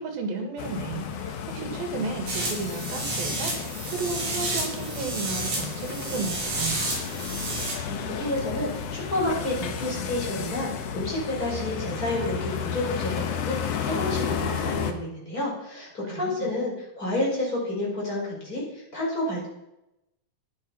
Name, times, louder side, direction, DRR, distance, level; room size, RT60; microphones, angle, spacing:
voice 1, 0.0-6.9 16.1-16.5, right 4 dB, 80° right, 4 dB, 4.0 m, -33 dB
sound 1, 0.6-14.9, left 7 dB, 60° left, 1.8 m, -32 dB
sound 2, 2.3-7.7, right 2 dB, 60° right, 6.3 m, -31 dB
voice 2, 7.8-19.5, left 1 dB, 25° left, -4 dB, 5.6 m, -30 dB
13.5 x 10.5 x 5.8 m, 0.88 s
omnidirectional pair, 4.1 m